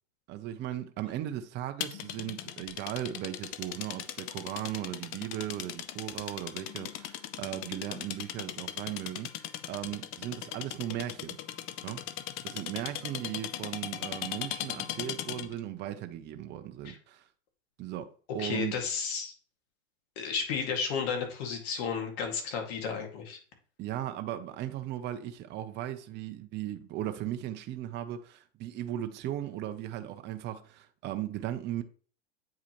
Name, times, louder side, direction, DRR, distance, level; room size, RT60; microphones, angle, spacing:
voice 1, 0.3-9.3 9.7-11.4 11.8-12.0 12.4-17.2 17.8-18.8 23.8-31.8, right 12 dB, 30° right, 0.6 m, -37 dB
sound 1, 1.8-15.6, left 12 dB, 35° left, 0.5 m, -39 dB
voice 2, 18.4-19.3 20.2-23.4, left 6 dB, 55° left, 2.1 m, -33 dB
8.3 x 4.8 x 3.0 m
hypercardioid pair, 115°, 36 cm